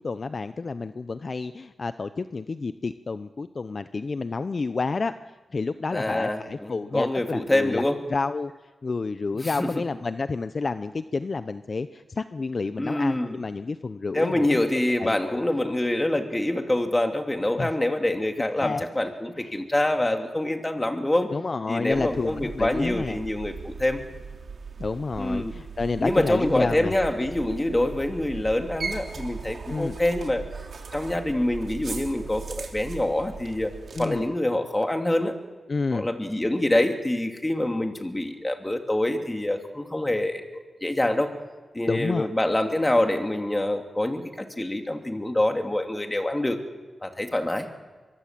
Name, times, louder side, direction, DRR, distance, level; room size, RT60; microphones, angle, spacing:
voice 1, 0.0-7.8 8.1-8.5 8.8-14.5 15.0-15.4 17.6-17.7 18.6-18.9 21.3-23.2 24.8-26.9 29.7-30.0 33.9-34.2 35.7-36.1 41.9-42.3, left 4 dB, 55° left, 12 dB, 0.7 m, -30 dB
voice 2, 5.9-8.0 9.3-9.8 12.8-13.4 14.1-21.3 21.7-24.0 25.2-25.5 26.0-30.4 30.9-33.7 34.0-35.3 35.9-41.3 41.7-46.6 47.0-47.7, left 1 dB, 20° left, 4 dB, 2.9 m, -25 dB
sound 1, 21.9-34.1, right 5 dB, 70° right, 3.2 m, -38 dB
23.5 x 23.5 x 7.6 m, 1.4 s
cardioid pair, 60°, 0 cm